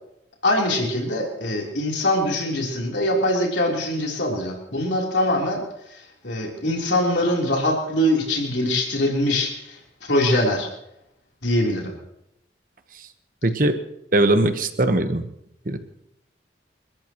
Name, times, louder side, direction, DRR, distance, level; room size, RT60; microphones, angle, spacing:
voice 1, 0.4-5.6 5.9-10.7 11.4-11.9, left 1 dB, 75° left, -1 dB, 3.5 m, -23 dB
voice 2, 13.4-13.8 14.1-15.3 15.6-15.8, right 1 dB, 45° right, 8 dB, 1.1 m, -20 dB
28.5 x 13.5 x 3.0 m, 0.81 s
head